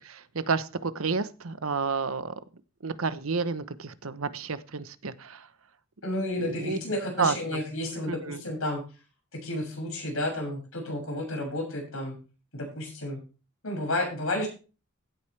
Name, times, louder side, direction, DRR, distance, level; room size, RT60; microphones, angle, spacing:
voice 1, 0.0-2.3 2.8-5.5 6.4-6.8 7.2-7.6 8.1-8.4, right 4 dB, 80° right, 13 dB, 1.0 m, -30 dB
voice 2, 6.0-8.8 9.4-12.2 12.5-13.2 13.6-14.5, left 1 dB, 75° left, 1 dB, 6.9 m, -31 dB
16.0 x 8.8 x 3.4 m, 0.34 s
head